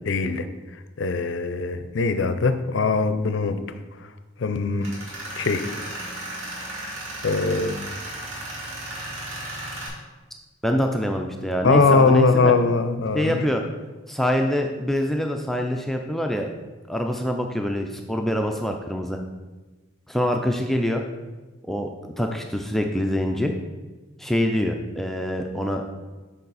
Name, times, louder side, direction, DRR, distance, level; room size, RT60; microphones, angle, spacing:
voice 1, 0.1-0.4 1.0-3.6 4.4-4.9 5.4-5.6 7.2-7.9 11.6-13.4, left 4 dB, 60° left, 10 dB, 0.5 m, -21 dB
Tools, 4.8-9.9, right 1 dB, 70° right, 2.2 m, -35 dB
voice 2, 10.6-12.5 13.1-13.6 14.1-16.5 16.9-19.2 20.1-21.0 21.7-21.9 22.2-23.5 24.2-25.8, equal, ahead, 3 dB, 0.3 m, -25 dB
6.8 x 5.4 x 4.0 m, 1.2 s
head